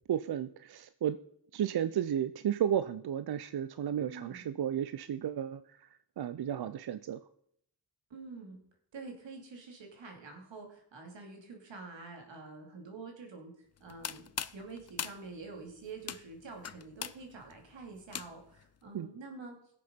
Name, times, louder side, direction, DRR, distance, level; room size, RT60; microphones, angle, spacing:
voice 1, 0.1-1.2 1.5-5.6 6.2-7.2 18.9-19.1, right 9 dB, 60° right, 12 dB, 0.6 m, -33 dB
voice 2, 4.1-4.5 8.1-8.6 8.9-19.6, right 3 dB, 90° right, 2 dB, 2.6 m, -47 dB
sound 1, 13.8-18.6, left 8 dB, 35° left, 0.5 m, -42 dB
16.0 x 6.8 x 5.2 m, 0.69 s
cardioid pair, 60°, 43 cm